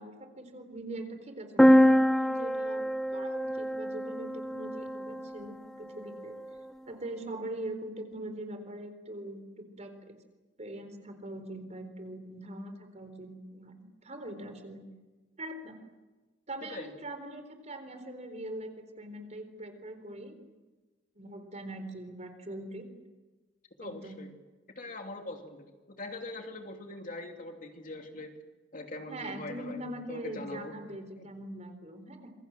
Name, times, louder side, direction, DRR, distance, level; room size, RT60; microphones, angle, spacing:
voice 1, 0.0-6.4 6.9-10.1 10.6-14.9 15.4-15.8 16.5-20.4 21.1-22.9 23.8-24.2 29.1-32.3, right 1 dB, 35° right, 8 dB, 4.1 m, -42 dB
sound 1, 1.6-5.3, equal, 5° left, 0.9 m, -25 dB
voice 2, 23.8-24.3 24.7-28.3 28.7-29.8 30.1-30.8 31.2-31.3, left 2 dB, 45° left, 3 dB, 2.9 m, -42 dB
27.5 x 23.0 x 7.7 m, 1.2 s
head